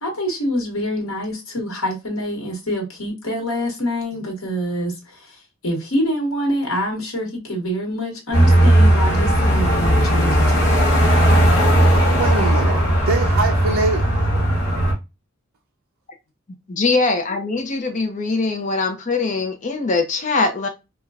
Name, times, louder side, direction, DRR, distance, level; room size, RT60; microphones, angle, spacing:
voice 1, 0.0-10.7, equal, 80° left, 1.2 m, -26 dB
sound 1, 8.3-14.9, right 1 dB, 55° left, 1.0 m, -16 dB
voice 2, 12.2-14.1, right 4 dB, 90° right, 0.4 m, -23 dB
voice 3, 16.7-20.7, left 3 dB, 35° left, 0.5 m, -22 dB
3.2 x 2.2 x 2.3 m
head